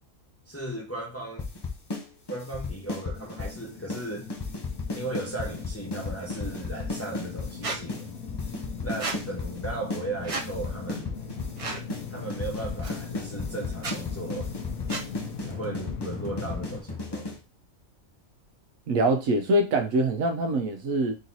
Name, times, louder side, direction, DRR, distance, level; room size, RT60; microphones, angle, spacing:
voice 1, 0.5-1.5 2.3-4.3 4.9-8.1 8.8-11.1 12.1-14.5 15.4-17.3, right 2 dB, 10° left, 0.8 m, -36 dB
sound 1, 1.4-2.0 2.3-3.6 3.9-4.0 4.3-7.5 7.9-8.0 8.3-10.0 10.3-11.6 11.9-12.0 12.3-17.4, left 3 dB, 30° left, 0.5 m, -34 dB
sound 2, 2.8-16.8, left 6 dB, 80° left, 1.2 m, -40 dB
Squeak, 7.6-7.8 9.0-9.2 10.2-10.5 11.6-11.8 12.8-12.9 13.7-14.0 14.9-15.1, right 3 dB, 45° right, 0.4 m, -32 dB
voice 2, 18.9-21.2, right 1 dB, 75° right, 1.2 m, -24 dB
3.8 x 2.9 x 3.9 m
omnidirectional pair, 1.5 m